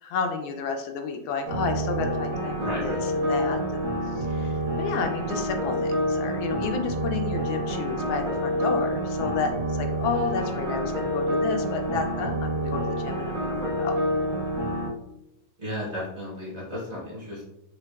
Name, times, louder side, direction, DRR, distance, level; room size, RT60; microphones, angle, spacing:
voice 1, 0.0-14.0, left 5 dB, 80° left, 5 dB, 1.4 m, -31 dB
sound 1, 1.5-14.9, equal, 85° right, 2.2 m, -28 dB
voice 2, 2.6-3.0 10.3-10.5 15.6-17.4, left 1 dB, 40° right, -5 dB, 1.1 m, -34 dB
6.5 x 2.3 x 2.3 m, 0.88 s
omnidirectional pair, 2.2 m